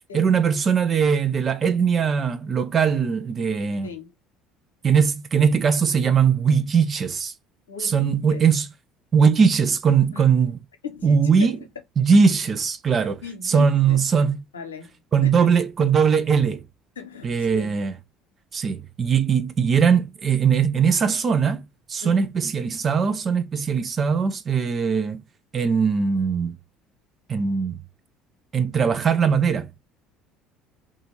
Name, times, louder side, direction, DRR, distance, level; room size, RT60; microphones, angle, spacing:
voice 1, 0.1-3.9 4.8-7.3 7.8-8.7 9.1-10.6 11.0-11.5 12.0-14.4 15.1-16.6 17.2-17.9 18.5-25.2 25.5-26.6 27.3-27.8 28.5-29.7, right 6 dB, 35° right, 0.5 m, -20 dB
voice 2, 3.8-4.1 7.7-8.4 10.1-10.3 10.8-11.7 13.2-14.0 14.5-15.6 17.0-17.7 22.0-22.3, left 6 dB, 85° left, 0.7 m, -38 dB
2.5 x 2.4 x 3.0 m
figure-of-eight pair, 60°, 0 cm